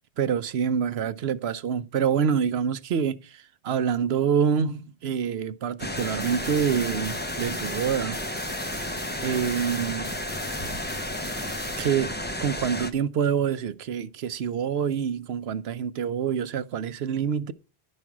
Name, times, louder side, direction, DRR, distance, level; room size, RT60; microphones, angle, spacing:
voice 1, 0.2-8.2 9.2-10.1 11.8-17.5, right 7 dB, 75° right, 1.0 m, -26 dB
sound 1, 5.8-12.9, left 1 dB, 10° left, 0.9 m, -32 dB
sound 2, 6.0-11.9, left 1 dB, 30° left, 3.4 m, -41 dB
11.5 x 5.4 x 6.0 m
omnidirectional pair, 1.1 m